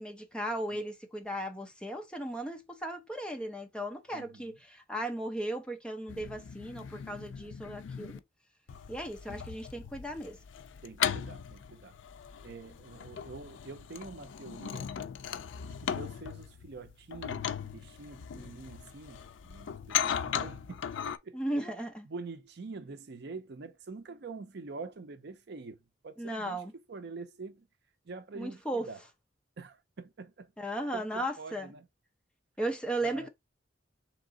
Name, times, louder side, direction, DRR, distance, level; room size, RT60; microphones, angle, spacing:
voice 1, 0.0-8.2 8.9-10.4 21.3-22.1 26.2-26.7 28.4-28.9 30.6-31.7 32.6-33.3, right 1 dB, 5° left, 0.6 m, -36 dB
voice 2, 4.1-4.6 9.3-9.5 10.8-12.0 12.4-14.9 15.7-21.4 22.0-26.6 26.9-27.7 28.0-29.0 29.6-30.5 30.9-31.9 33.0-33.3, right 3 dB, 60° right, 0.5 m, -46 dB
sound 1, 6.1-8.2 8.7-21.2, left 8 dB, 80° left, 0.4 m, -38 dB
3.6 x 3.0 x 3.7 m
head